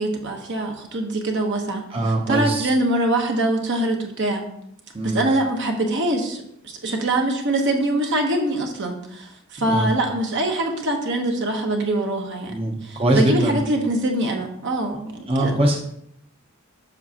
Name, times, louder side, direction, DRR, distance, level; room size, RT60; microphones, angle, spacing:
voice 1, 0.0-1.8 2.3-4.5 5.0-15.6, right 1 dB, 55° right, 3 dB, 1.0 m, -23 dB
voice 2, 1.9-2.7 4.9-5.2 9.6-9.9 12.5-13.6 15.3-15.8, right 1 dB, 25° right, -1 dB, 0.7 m, -22 dB
7.3 x 5.9 x 2.8 m, 0.73 s
head